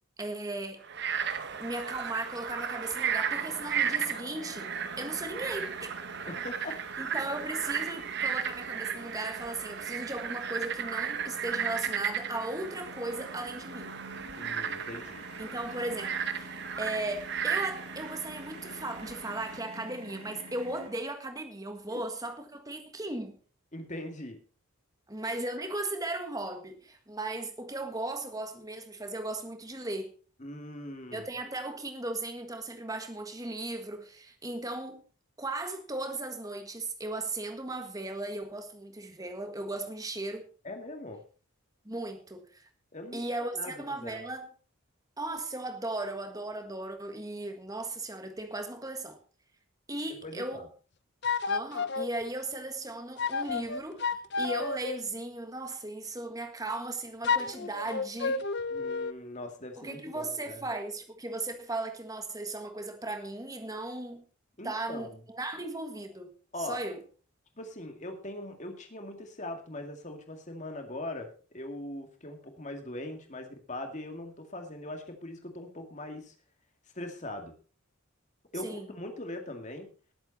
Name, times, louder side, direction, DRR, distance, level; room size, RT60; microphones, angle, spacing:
voice 1, 0.2-0.8 1.6-4.7 5.0-5.9 7.0-13.9 15.4-23.4 25.1-30.1 31.1-35.0 35.4-40.5 41.8-42.7 43.1-44.5 45.2-49.2 49.9-50.6 51.5-58.4 59.8-64.2 64.6-67.0 78.6-78.9, right 2 dB, 15° right, 1.6 m, -37 dB
Frog, 0.8-19.6, right 7 dB, 50° right, 1.1 m, -35 dB
sound 1, 3.4-20.9, right 1 dB, 90° right, 5.4 m, -48 dB
voice 2, 6.3-6.8 14.4-15.2 21.9-22.0 23.7-24.4 30.4-31.3 40.6-41.2 42.9-44.2 50.2-50.7 58.7-60.6 64.6-65.2 66.5-66.8 67.6-76.3 76.9-77.5 78.5-79.9, left 1 dB, 35° left, 2.2 m, -41 dB
sound 2, 51.2-52.1 53.2-55.0 57.2-59.1, left 4 dB, 50° left, 0.6 m, -31 dB
19.0 x 8.2 x 4.2 m
head